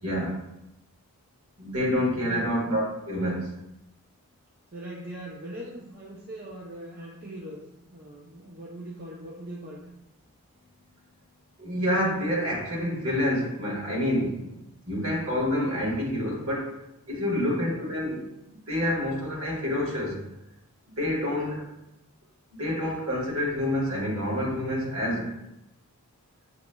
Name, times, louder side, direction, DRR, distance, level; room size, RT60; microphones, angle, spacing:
voice 1, 0.0-0.4 1.6-3.5 11.6-14.6 14.9-16.7 17.1-20.2 21.0-21.6 22.6-25.3, left 1 dB, 65° right, -3 dB, 1.4 m, -28 dB
voice 2, 2.1-2.5 4.7-7.6 7.9-9.9 17.2-17.3 21.1-21.6, right 1 dB, 45° right, -4 dB, 0.5 m, -41 dB
6.2 x 3.0 x 2.2 m, 0.87 s
head